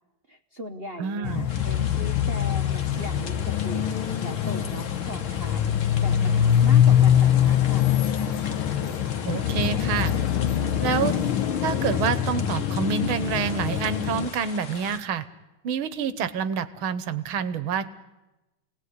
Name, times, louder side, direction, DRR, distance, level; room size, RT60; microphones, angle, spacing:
voice 1, 0.3-7.9, equal, 40° right, 4 dB, 0.9 m, -39 dB
voice 2, 1.0-1.5 9.3-10.1 10.8-11.1 11.6-15.3 15.6-17.9, right 7 dB, 80° right, 14 dB, 1.9 m, -27 dB
sound 1, 1.2-14.3, left 10 dB, 80° left, 1.9 m, -23 dB
sound 2, 1.5-15.0, left 5 dB, 45° left, 1.3 m, -41 dB
26.5 x 18.0 x 9.6 m, 1.0 s
omnidirectional pair, 2.3 m